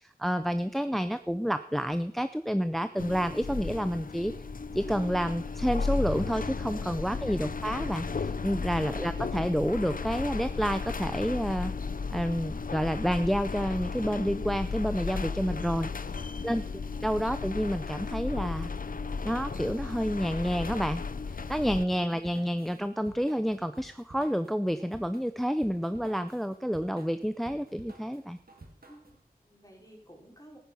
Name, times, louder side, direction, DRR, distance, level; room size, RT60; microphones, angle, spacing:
voice 1, 0.0-4.3 4.7-16.2 16.4-16.6 17.0-18.7 19.2-21.0 21.3-28.4, equal, ahead, 11 dB, 0.5 m, -29 dB
sound 1, 3.0-21.9, left 4 dB, 65° left, 0.6 m, -35 dB
voice 2, 16.2-17.4 28.9-30.6, equal, 25° left, 0 dB, 4.0 m, -56 dB
Drum kit / Drum, 21.9-29.2, right 2 dB, 75° right, 2.2 m, -53 dB
14.0 x 9.5 x 5.8 m, 0.64 s
wide cardioid pair, 50°, 16 cm